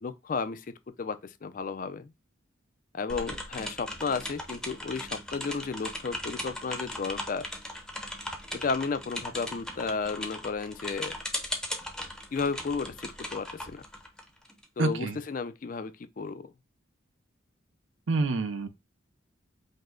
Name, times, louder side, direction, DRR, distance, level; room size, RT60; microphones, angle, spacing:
voice 1, 0.0-2.1 2.9-7.5 8.5-11.2 12.3-13.8 14.8-16.5, left 4 dB, 40° left, 0.4 m, -33 dB
sound 1, 3.1-14.6, left 1 dB, 5° left, 0.6 m, -38 dB
voice 2, 14.8-15.2 18.1-18.7, right 3 dB, 75° right, 0.6 m, -27 dB
5.3 x 2.1 x 3.7 m
head